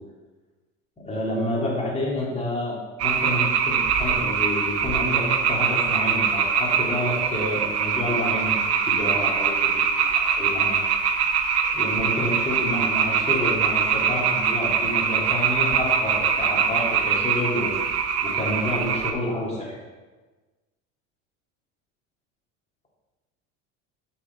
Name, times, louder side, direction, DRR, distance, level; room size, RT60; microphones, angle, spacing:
voice 1, 1.0-8.6 8.9-10.8 11.7-17.7 18.2-19.8, left 1 dB, 15° left, -4 dB, 2.9 m, -29 dB
sound 1, 3.0-19.1, right 6 dB, 40° right, 0.9 m, -23 dB
7.3 x 6.1 x 4.6 m, 1.3 s
supercardioid pair, 105°, 38 cm